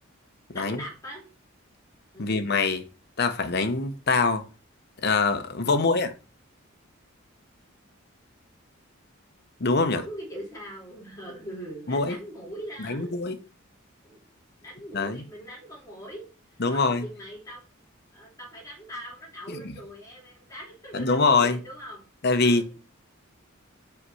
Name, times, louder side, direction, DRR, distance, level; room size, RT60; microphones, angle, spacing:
voice 1, 0.5-1.2 2.1-2.5 5.6-6.0 9.9-13.1 14.0-14.2 14.6-16.2 16.5-17.6 18.1-22.0 22.4-22.8, equal, 15° left, 3.2 m, -41 dB
voice 2, 2.2-2.8 3.2-4.4 5.0-6.1 9.6-10.0 11.9-12.2 12.9-13.4 14.9-15.2 16.6-17.0 20.9-21.6 22.2-22.8, left 3 dB, 50° left, 0.9 m, -23 dB
5.6 x 5.5 x 6.2 m
head